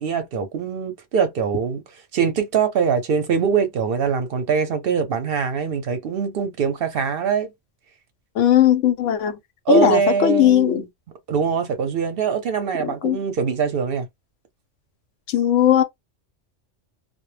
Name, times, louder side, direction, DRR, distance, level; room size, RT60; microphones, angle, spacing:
voice 1, 0.0-7.5 9.7-10.9 11.3-14.1, right 6 dB, 60° right, 0.7 m, -23 dB
voice 2, 8.4-9.4 9.7-10.8 12.8-13.2 15.3-15.8, left 10 dB, 90° left, 0.9 m, -18 dB
2.1 x 2.0 x 3.1 m
omnidirectional pair, 1.2 m